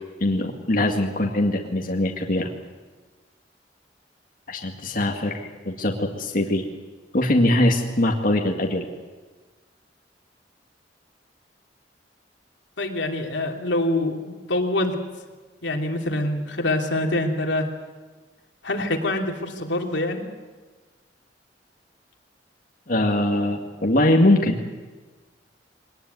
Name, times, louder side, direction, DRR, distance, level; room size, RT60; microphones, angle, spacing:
voice 1, 0.2-2.5 4.5-6.6 7.1-8.9 22.9-24.6, left 1 dB, 50° left, 1 dB, 2.0 m, -22 dB
voice 2, 12.8-15.0 15.6-17.7 18.6-20.2, left 1 dB, 85° left, 2 dB, 3.1 m, -25 dB
23.0 x 19.0 x 9.5 m, 1.3 s
head